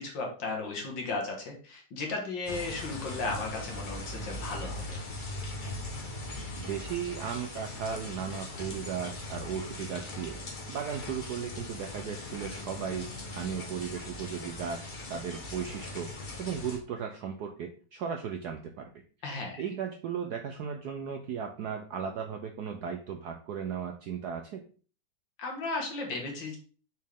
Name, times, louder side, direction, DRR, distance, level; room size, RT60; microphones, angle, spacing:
voice 1, 0.0-5.0 19.2-19.6 25.4-26.6, left 3 dB, 60° left, 1 dB, 2.1 m, -35 dB
sound 1, 2.5-16.8, left 2 dB, 30° left, 1.0 m, -40 dB
voice 2, 6.6-10.4 10.7-18.9 19.2-24.6, right 7 dB, 75° right, 5 dB, 0.9 m, -36 dB
6.2 x 4.4 x 3.6 m, 0.40 s
omnidirectional pair, 2.3 m